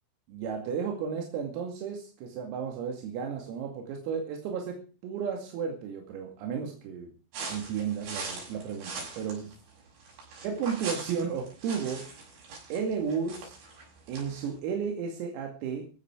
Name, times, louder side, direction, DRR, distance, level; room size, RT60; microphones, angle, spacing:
voice 1, 0.3-7.1 7.5-9.5 10.4-12.1 12.7-13.6 14.1-15.9, right 6 dB, 85° right, 2 dB, 5.0 m, -33 dB
sound 1, 7.3-14.5, right 4 dB, 65° right, 9.0 m, -41 dB
15.5 x 14.0 x 4.9 m, 0.36 s
omnidirectional pair, 6.0 m